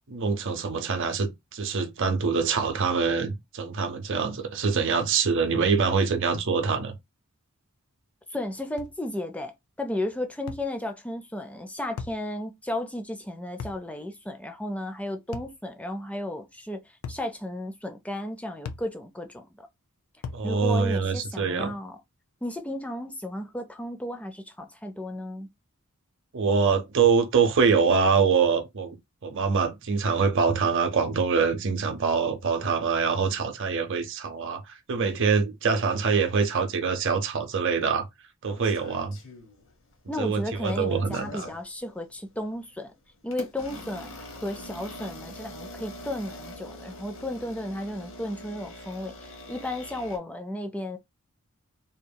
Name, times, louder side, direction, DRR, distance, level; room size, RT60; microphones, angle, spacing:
voice 1, 0.1-6.9 20.3-21.7 26.3-29.0 29.2-38.1 38.4-39.2 40.2-41.5, right 5 dB, 55° right, 0.6 m, -24 dB
voice 2, 8.3-19.7 20.4-22.0 22.4-25.5 40.1-42.9 43.2-51.0, left 1 dB, 5° left, 0.3 m, -34 dB
sound 1, 8.8-9.0 10.5-10.7 12.0-12.2 13.6-13.8 15.3-15.6 17.0-17.3 18.6-18.9 20.2-20.5, left 5 dB, 85° left, 0.4 m, -37 dB
sound 2, 38.5-39.9 40.3-41.6 42.3-42.5 43.3-50.2, left 1 dB, 60° left, 0.7 m, -43 dB
2.8 x 2.5 x 2.2 m
head